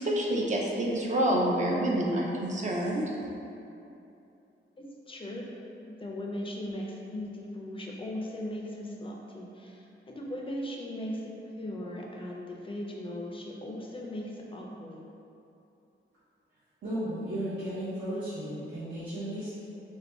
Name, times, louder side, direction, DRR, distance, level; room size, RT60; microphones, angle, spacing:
voice 1, 0.0-3.1, right 1 dB, 35° right, -2 dB, 0.4 m, -27 dB
voice 2, 4.8-15.1, left 1 dB, 25° left, -2 dB, 0.4 m, -38 dB
voice 3, 16.8-19.6, right 1 dB, 55° right, -14 dB, 1.0 m, -34 dB
4.6 x 2.2 x 3.4 m, 2.8 s
wide cardioid pair, 175°, 21 cm